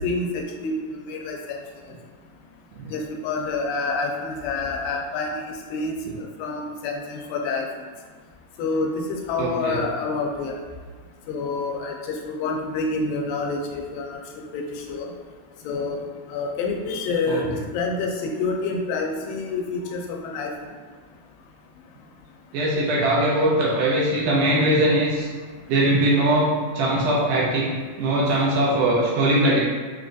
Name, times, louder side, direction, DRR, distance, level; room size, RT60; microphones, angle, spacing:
voice 1, 0.0-1.6 2.9-5.4 5.7-7.7 8.6-10.6 11.3-14.2 14.5-14.6 14.9-15.1 15.7-16.0 16.3-17.5 17.7-18.1 18.4-20.5, left 3 dB, 90° left, 1 dB, 2.3 m, -27 dB
voice 2, 9.4-9.8 17.3-17.4 22.5-25.3 25.7-29.6, right 1 dB, 80° right, -4 dB, 1.9 m, -21 dB
6.2 x 2.4 x 2.5 m, 1.5 s
omnidirectional pair, 4.0 m